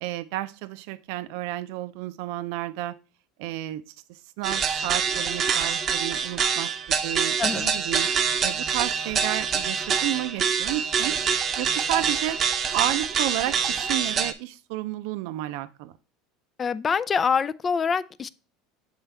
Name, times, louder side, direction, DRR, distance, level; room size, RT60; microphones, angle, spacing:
voice 1, 0.0-2.9 3.4-8.1 8.4-11.2 11.6-12.4 12.7-15.9, right 15 dB, 70° right, 0.4 m, -32 dB
sound 1, 4.4-14.3, right 6 dB, 30° right, 0.7 m, -25 dB
voice 2, 7.4-7.7 16.6-18.3, left 6 dB, 25° left, 0.3 m, -25 dB
7.3 x 4.4 x 3.4 m
supercardioid pair, 140°, 0 cm